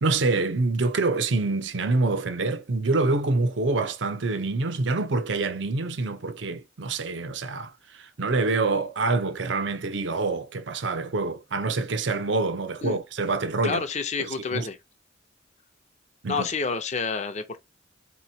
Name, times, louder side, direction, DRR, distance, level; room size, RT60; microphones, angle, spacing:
voice 1, 0.0-13.8 14.2-14.7 16.2-16.4, right 3 dB, 70° right, 0.6 m, -26 dB
voice 2, 13.6-14.8 16.3-17.6, left 5 dB, 40° left, 0.6 m, -29 dB
4.1 x 3.0 x 2.7 m
head